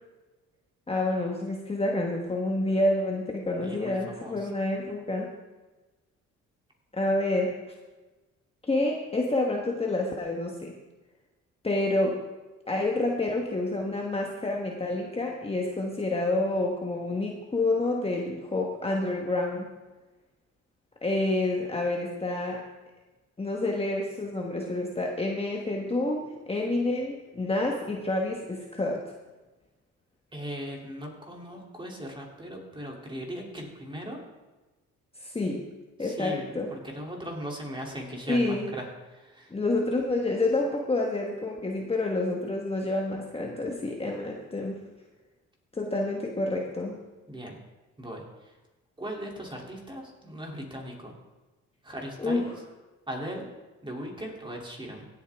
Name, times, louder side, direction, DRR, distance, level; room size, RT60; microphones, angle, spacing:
voice 1, 0.9-5.3 6.9-7.7 8.7-10.7 11.6-12.2 12.7-19.7 21.0-22.6 23.4-29.0 35.2-35.6 36.0-36.7 38.3-38.7 39.5-44.8 45.7-47.0 52.2-52.4, left 2 dB, 20° left, 0 dB, 1.4 m, -28 dB
voice 2, 3.6-4.5 30.3-34.2 36.0-39.5 47.3-47.6 48.0-48.6 49.0-51.1 51.8-52.5 53.1-53.5 53.8-55.1, equal, 15° right, -1 dB, 3.0 m, -38 dB
16.5 x 8.2 x 3.6 m, 1.2 s
cardioid pair, 90°, 30 cm